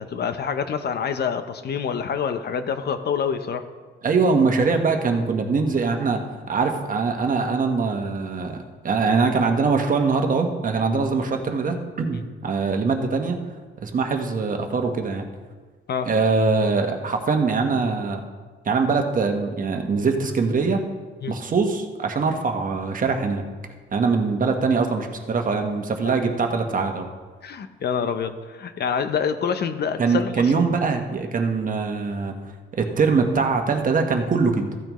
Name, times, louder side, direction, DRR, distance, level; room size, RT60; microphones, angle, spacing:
voice 1, 0.0-3.6 15.9-16.1 21.2-21.3 26.0-26.1 27.4-30.6, left 7 dB, 55° left, 10 dB, 0.8 m, -26 dB
voice 2, 4.0-6.2 6.5-13.4 13.8-15.3 16.1-18.2 18.6-20.8 21.3-23.4 23.9-27.1 30.0-32.3 32.7-34.7, right 4 dB, 45° right, 4 dB, 1.3 m, -22 dB
14.5 x 8.8 x 3.2 m, 1.4 s
cardioid pair, 90°, 20 cm